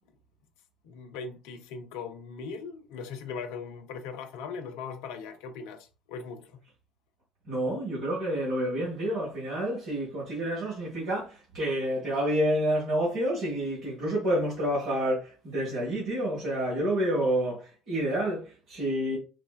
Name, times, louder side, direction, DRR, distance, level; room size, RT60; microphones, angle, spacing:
voice 1, 0.8-6.6, left 5 dB, 70° left, 0.5 m, -39 dB
voice 2, 7.5-19.2, right 1 dB, 70° right, 1.4 m, -29 dB
4.1 x 2.1 x 2.2 m
hypercardioid pair, 55°, 0 cm